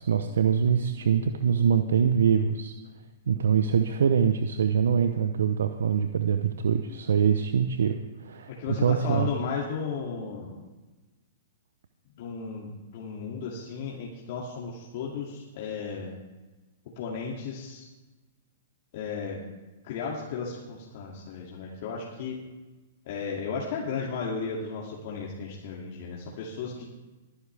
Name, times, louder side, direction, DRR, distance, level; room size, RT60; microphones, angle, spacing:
voice 1, 0.0-2.7 3.3-8.5 8.8-9.3, right 7 dB, 75° right, 9 dB, 0.7 m, -24 dB
voice 2, 8.5-10.6 12.2-16.2 17.0-17.9 18.9-19.4 19.8-22.4 23.1-26.9, left 5 dB, 55° left, -3 dB, 2.4 m, -34 dB
21.5 x 9.9 x 3.4 m, 1.2 s
hypercardioid pair, 115°, 0 cm